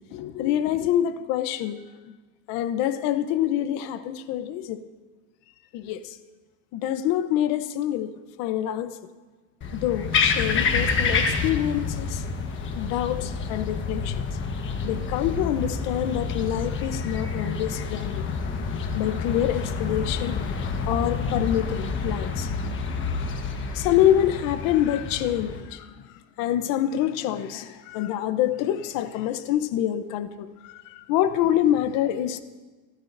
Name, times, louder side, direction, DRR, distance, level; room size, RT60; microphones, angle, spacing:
voice 1, 0.1-1.8 2.5-4.8 5.7-6.2 6.7-8.1 8.4-9.0 9.7-12.2 12.8-14.2 14.8-18.2 18.9-20.4 20.9-22.5 23.1-23.3 23.7-26.0 26.4-32.4, left 11 dB, 70° left, 0.9 m, -26 dB
sound 1, 9.6-25.6, left 5 dB, 35° left, 1.3 m, -28 dB
26.0 x 12.5 x 2.6 m
cardioid pair, 145°, 35 cm